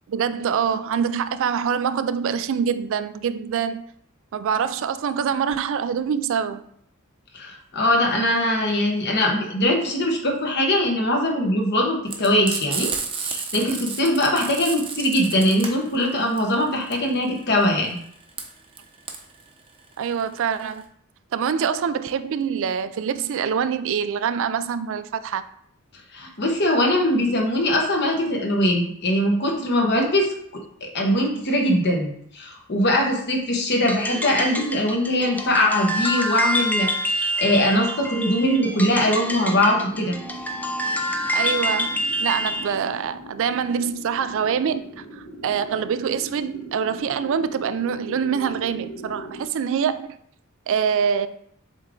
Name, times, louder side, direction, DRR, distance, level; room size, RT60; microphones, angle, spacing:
voice 1, 0.1-3.8 4.3-6.6 20.0-20.9 21.3-25.4 41.3-50.2 50.7-51.3, right 7 dB, 65° right, 12 dB, 0.4 m, -25 dB
voice 2, 7.3-18.0 26.1-30.3 30.8-40.2, left 1 dB, 55° left, 1 dB, 1.3 m, -21 dB
Frying (food), 12.1-20.8, right 5 dB, 25° right, 0.8 m, -32 dB
sound 1, 33.7-42.7, equal, 10° left, 0.5 m, -27 dB
sound 2, 38.5-49.5, right 1 dB, 75° left, 1.4 m, -41 dB
7.2 x 3.5 x 3.8 m, 0.68 s
head